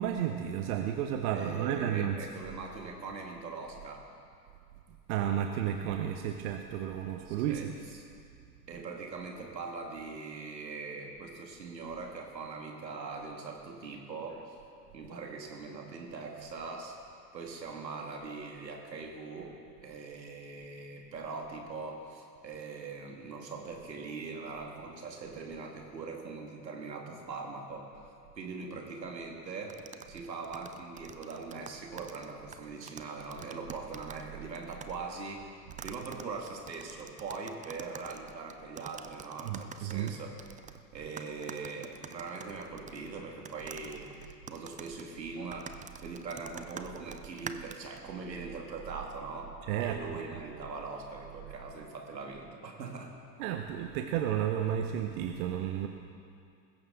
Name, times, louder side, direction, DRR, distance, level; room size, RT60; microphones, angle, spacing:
voice 1, 0.0-2.3 5.1-7.7 39.4-40.1 45.4-45.5 49.6-50.4 53.4-55.9, right 10 dB, 60° right, 5 dB, 1.1 m, -32 dB
voice 2, 1.3-4.1 7.3-8.0 8.7-14.5 14.9-17.0 17.3-19.6 19.8-40.4 40.9-49.5 49.8-53.1, right 4 dB, 85° right, 2 dB, 2.3 m, -42 dB
sound 1, 29.7-34.3 34.6-35.0 35.7-40.8 41.2-43.1 43.5-48.0, right 7 dB, 15° right, 0.5 m, -46 dB
20.0 x 16.0 x 3.9 m, 2.4 s
hypercardioid pair, 85°, 49 cm